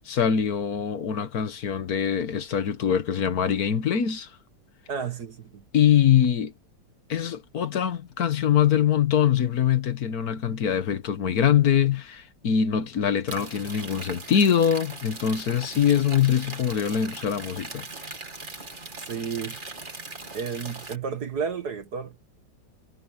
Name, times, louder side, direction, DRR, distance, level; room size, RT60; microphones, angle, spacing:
voice 1, 0.0-4.3 5.7-6.5 7.1-17.9, left 9 dB, 60° left, 1.6 m, -23 dB
voice 2, 4.9-5.6 19.1-19.6 20.3-22.3, right 6 dB, 60° right, 2.0 m, -32 dB
sound 1, 13.3-21.0, right 3 dB, 25° right, 2.2 m, -40 dB
omnidirectional pair, 2.0 m